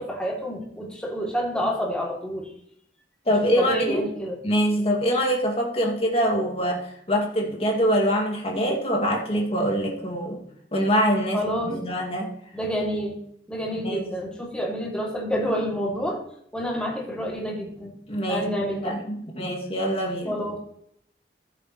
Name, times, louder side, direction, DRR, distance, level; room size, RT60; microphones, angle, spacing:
voice 1, 0.0-2.5 3.3-4.4 11.3-11.7 12.5-13.2 13.5-16.2 16.5-17.9 18.3-18.9 20.3-20.6, equal, 5° left, 2.7 m, -28 dB
voice 2, 3.3-4.1 4.4-10.4 10.7-12.4 13.8-14.1 18.1-18.5 18.7-20.4, equal, 35° left, 2.2 m, -24 dB
14.5 x 7.3 x 3.1 m
head